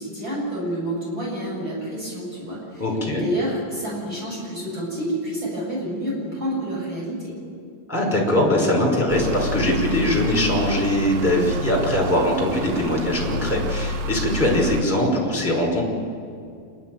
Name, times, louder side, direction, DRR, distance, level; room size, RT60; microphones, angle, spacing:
voice 1, 0.0-2.8 3.1-7.3, equal, 20° right, -5 dB, 8.0 m, -28 dB
voice 2, 2.8-3.2 7.9-15.9, left 1 dB, 5° left, -2 dB, 4.6 m, -21 dB
sound 1, 9.1-14.8, equal, 80° right, 3.5 m, -29 dB
27.5 x 11.5 x 9.3 m, 2.3 s
omnidirectional pair, 5.3 m